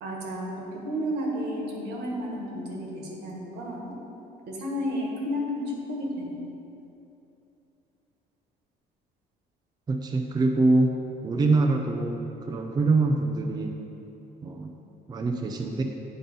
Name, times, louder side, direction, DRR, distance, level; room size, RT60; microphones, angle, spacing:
voice 1, 0.0-3.9 4.5-5.6 5.9-6.4, equal, 80° right, -2 dB, 1.5 m, -32 dB
voice 2, 9.9-10.9 11.2-13.8 14.4-14.7 15.1-15.8, right 3 dB, 25° right, 2 dB, 0.5 m, -24 dB
8.6 x 3.9 x 5.4 m, 2.9 s
cardioid pair, 110°, 17 cm